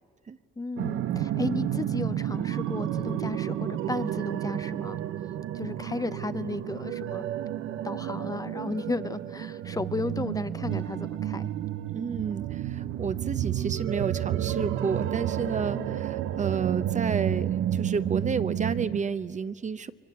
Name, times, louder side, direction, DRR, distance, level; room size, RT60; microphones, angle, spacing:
voice 1, 0.6-5.0 5.5-7.3 7.8-11.5 15.7-16.0, left 3 dB, 20° left, 12 dB, 0.7 m, -34 dB
sound 1, 0.8-19.0, right 11 dB, 90° right, 0.8 m, -31 dB
voice 2, 11.9-19.9, right 5 dB, 35° right, 12 dB, 0.9 m, -31 dB
30.0 x 23.0 x 8.0 m, 2.1 s
cardioid pair, 90°, 20 cm